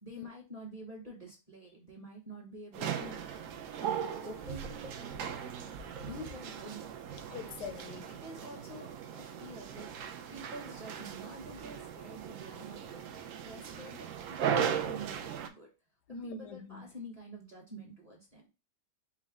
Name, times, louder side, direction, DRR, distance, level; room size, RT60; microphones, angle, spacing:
voice 1, 0.0-3.2 3.8-5.4 6.0-6.9 7.7-9.9 10.3-13.0 13.4-15.7 16.1-18.4, equal, 25° right, 0.9 m, -48 dB
sound 1, 2.7-15.5, right 8 dB, 75° right, 0.7 m, -38 dB
voice 2, 7.3-8.1 16.1-16.8, left 4 dB, 75° left, 1.2 m, -43 dB
4.9 x 2.1 x 3.5 m
omnidirectional pair, 1.8 m